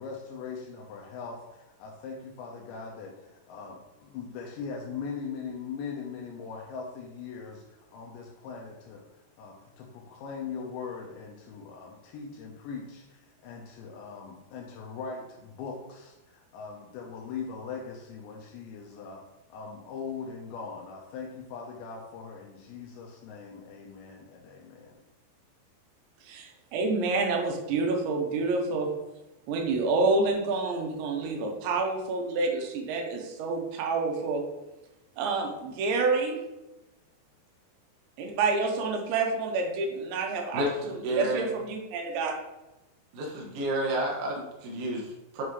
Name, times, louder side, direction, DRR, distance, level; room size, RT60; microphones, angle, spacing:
voice 1, 0.0-19.2 19.5-25.0, left 5 dB, 85° left, -2 dB, 3.1 m, -40 dB
voice 2, 26.2-28.9 29.5-34.4 35.2-36.4 38.2-42.3, right 3 dB, 85° right, 2 dB, 3.3 m, -28 dB
voice 3, 40.5-41.5 43.1-45.4, right 1 dB, 65° right, -2 dB, 2.5 m, -31 dB
8.0 x 5.7 x 3.1 m, 0.99 s
omnidirectional pair, 5.1 m